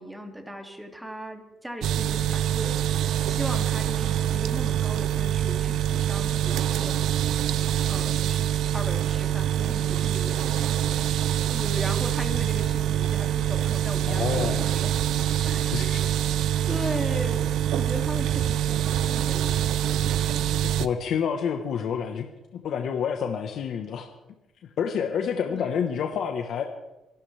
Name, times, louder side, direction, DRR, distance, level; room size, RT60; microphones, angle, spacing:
voice 1, 0.0-7.0 7.9-10.8 11.5-14.9 15.4-15.9 16.7-20.6 25.5-25.8, equal, 5° right, 3 dB, 2.7 m, -37 dB
sound 1, 1.8-20.9, right 11 dB, 80° right, 0.6 m, -25 dB
voice 2, 14.1-14.6 15.2-16.0 16.4-16.5 20.8-24.1 24.8-26.7, left 7 dB, 70° left, 4 dB, 1.3 m, -29 dB
25.5 x 12.0 x 3.5 m, 0.96 s
cardioid pair, 90°, 0 cm